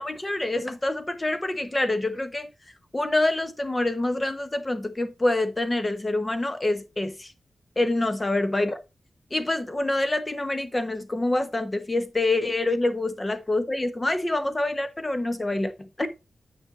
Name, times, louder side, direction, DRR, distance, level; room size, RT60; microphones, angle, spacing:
voice 1, 0.0-2.5 2.9-7.3 7.8-8.8 9.3-16.1, left 2 dB, 20° left, 1.0 m, -26 dB
9.7 x 5.2 x 4.1 m
wide cardioid pair, 140°, 0 cm